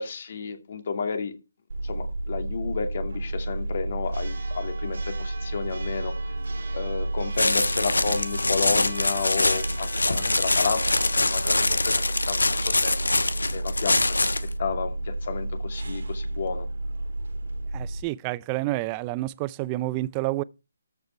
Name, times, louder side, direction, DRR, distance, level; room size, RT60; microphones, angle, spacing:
voice 1, 0.0-1.4 1.8-6.1 6.7-12.9 13.3-16.7, left 5 dB, 50° left, 2.6 m, -32 dB
Church bell, 1.7-18.0, right 2 dB, 70° right, 3.1 m, -31 dB
sound 1, 7.4-14.5, left 2 dB, 90° left, 1.2 m, -24 dB
voice 2, 17.7-20.4, right 18 dB, 20° right, 0.5 m, -29 dB
14.0 x 5.7 x 4.6 m
figure-of-eight pair, 155°, 0 cm